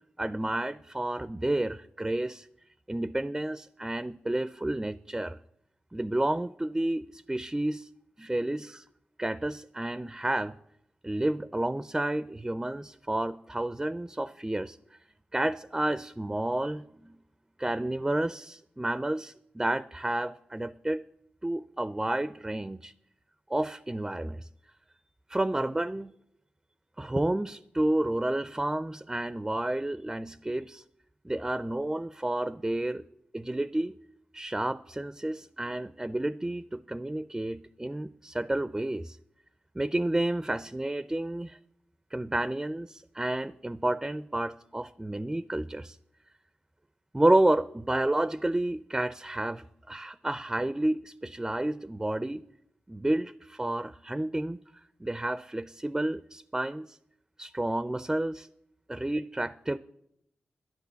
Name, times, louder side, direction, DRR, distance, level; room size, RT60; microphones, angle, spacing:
voice 1, 0.2-2.5 2.9-5.4 5.9-7.9 8.2-8.9 9.2-10.5 11.0-14.8 15.3-17.1 17.6-21.0 21.4-22.9 23.5-24.5 25.3-26.1 27.0-30.8 31.2-33.0 33.3-33.9 34.3-39.2 39.8-41.6 42.1-46.0 47.1-52.4 52.9-54.6 55.0-57.0 57.4-58.5 58.9-59.8, right 1 dB, 15° right, 15 dB, 0.4 m, -30 dB
10.5 x 10.5 x 6.9 m, 0.77 s
cardioid pair, 85°, 4 cm